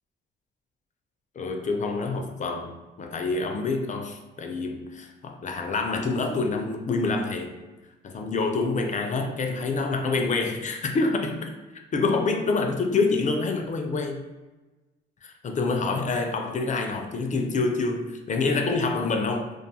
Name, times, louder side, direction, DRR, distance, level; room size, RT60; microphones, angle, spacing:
voice 1, 1.4-7.5 8.0-11.5 11.9-14.2 15.2-19.5, left 3 dB, 40° left, 4 dB, 0.4 m, -27 dB
2.4 x 2.3 x 2.7 m, 1.1 s
cardioid pair, 90°, 20 cm